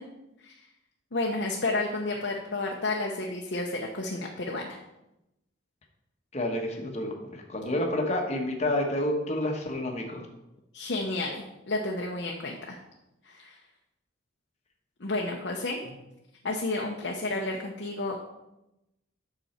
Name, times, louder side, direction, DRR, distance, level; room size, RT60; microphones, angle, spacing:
voice 1, 1.1-4.8 10.7-12.8 13.2-13.6 15.0-15.8 16.4-18.2, left 2 dB, 60° left, -1 dB, 0.9 m, -31 dB
voice 2, 6.3-10.3, left 1 dB, 35° left, 1 dB, 1.2 m, -29 dB
8.2 x 6.2 x 4.4 m, 0.91 s
head